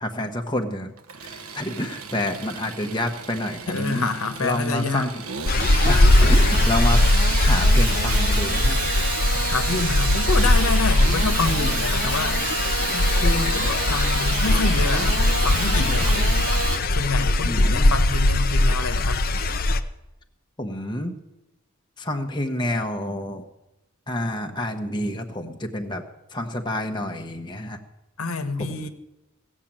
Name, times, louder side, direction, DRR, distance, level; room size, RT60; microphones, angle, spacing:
voice 1, 0.0-0.9 1.2-4.1 4.4-5.2 5.8-7.1 7.4-8.8 11.4-11.7 17.4-17.9 20.6-21.1 22.0-23.4 24.1-26.0 26.3-27.8 28.6-28.9, left 1 dB, 20° left, 3 dB, 1.1 m, -28 dB
Engine starting / Sawing, 1.0-16.8, right 6 dB, 90° right, 1.3 m, -30 dB
voice 2, 3.7-5.1 9.5-16.4 16.9-19.2 28.2-28.9, left 4 dB, 80° left, 8 dB, 1.3 m, -28 dB
sound 1, 5.5-19.8, left 2 dB, 45° left, 0.7 m, -20 dB
16.5 x 7.4 x 8.8 m, 0.99 s
head